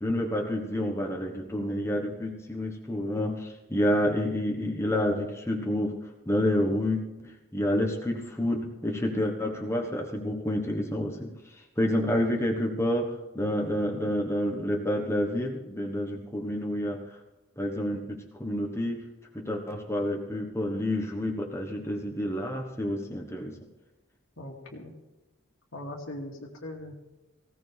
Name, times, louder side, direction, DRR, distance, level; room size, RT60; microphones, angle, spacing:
voice 1, 0.0-6.0 6.2-17.0 17.6-19.0 19.3-23.6, left 1 dB, 15° left, 0 dB, 1.3 m, -29 dB
voice 2, 24.4-24.9 25.7-26.9, left 1 dB, 85° left, 0 dB, 2.6 m, -40 dB
18.5 x 16.5 x 3.5 m, 1.0 s
head